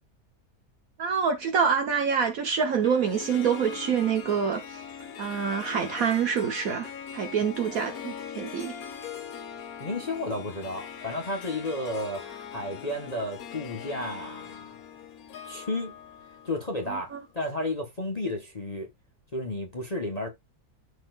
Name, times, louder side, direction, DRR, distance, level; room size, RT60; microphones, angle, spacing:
voice 1, 1.0-4.8 5.2-8.7 16.9-17.2, right 6 dB, 65° right, 1.4 m, -26 dB
Harp, 2.8-17.3, left 8 dB, 65° left, 1.4 m, -41 dB
voice 2, 9.8-14.8 15.4-15.9 16.4-18.9 19.3-20.3, left 1 dB, 25° left, 1.3 m, -32 dB
13.0 x 4.4 x 2.4 m
omnidirectional pair, 1.7 m